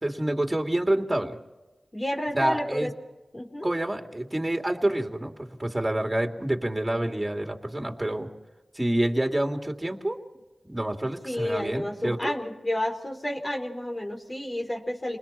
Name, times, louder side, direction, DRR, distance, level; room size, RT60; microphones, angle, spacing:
voice 1, 0.0-1.4 2.3-2.9 3.6-8.3 8.7-10.2 10.6-12.3, right 1 dB, 20° right, 4 dB, 2.9 m, -28 dB
voice 2, 1.9-2.9 3.3-3.7 11.2-15.2, left 1 dB, 30° left, 2 dB, 4.2 m, -30 dB
29.5 x 21.0 x 4.4 m, 1.1 s
cardioid pair, 40°, 0 cm